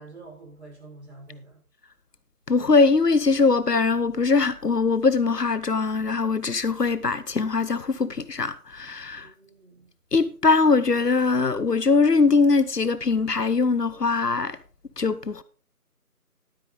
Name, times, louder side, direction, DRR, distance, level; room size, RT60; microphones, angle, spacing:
voice 1, 0.0-1.6 9.2-9.9, right 3 dB, 45° right, 6.3 m, -46 dB
voice 2, 2.5-9.3 10.1-14.6 15.0-15.4, left 4 dB, 90° left, 1.2 m, -21 dB
12.0 x 9.0 x 4.1 m
figure-of-eight pair, 180°, 46 cm